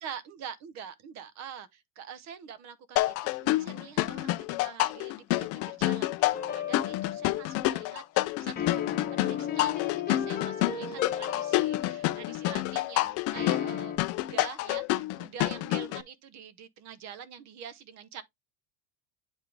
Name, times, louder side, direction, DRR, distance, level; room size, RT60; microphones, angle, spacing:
voice 1, 0.0-9.8 10.1-18.2, right 7 dB, 35° right, 0.8 m, -45 dB
sound 1, 3.0-16.0, left 17 dB, 35° left, 0.4 m, -28 dB
sound 2, 6.3-7.7 8.6-12.5 13.4-14.0, left 9 dB, 20° left, 1.0 m, -34 dB
9.0 x 3.5 x 3.3 m
cardioid pair, 160°, 45 cm